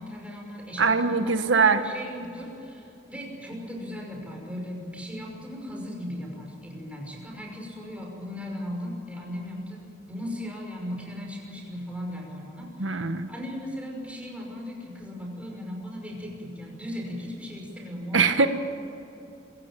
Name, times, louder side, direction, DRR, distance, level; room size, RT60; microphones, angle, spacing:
voice 1, 0.0-18.5, left 1 dB, 5° right, 0 dB, 5.8 m, -37 dB
voice 2, 0.8-1.8 12.8-13.3 18.1-18.5, right 4 dB, 90° right, 8 dB, 1.3 m, -22 dB
26.5 x 16.5 x 9.0 m, 2.8 s
head